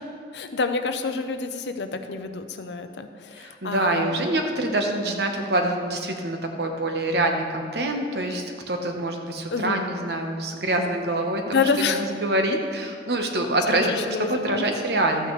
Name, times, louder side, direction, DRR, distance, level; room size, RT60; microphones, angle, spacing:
voice 1, 0.3-4.3 5.0-5.2 9.5-9.9 11.5-12.0 13.7-14.6, left 4 dB, 75° left, 8 dB, 0.6 m, -28 dB
voice 2, 3.4-13.9 14.2-15.3, right 1 dB, 65° right, 3 dB, 1.1 m, -25 dB
13.0 x 8.9 x 3.2 m, 2.2 s
head